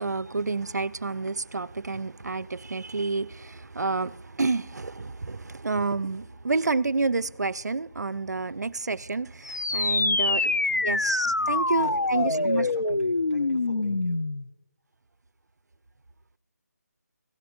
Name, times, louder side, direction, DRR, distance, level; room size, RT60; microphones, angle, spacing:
voice 1, 0.0-10.5 10.8-12.9, right 3 dB, 75° right, 0.4 m, -29 dB
sound 1, 9.4-14.5, left 3 dB, 90° left, 0.3 m, -25 dB
voice 2, 9.7-11.1 11.4-14.2, left 1 dB, 55° left, 4.2 m, -41 dB
16.5 x 11.0 x 2.3 m
figure-of-eight pair, 155°, 9 cm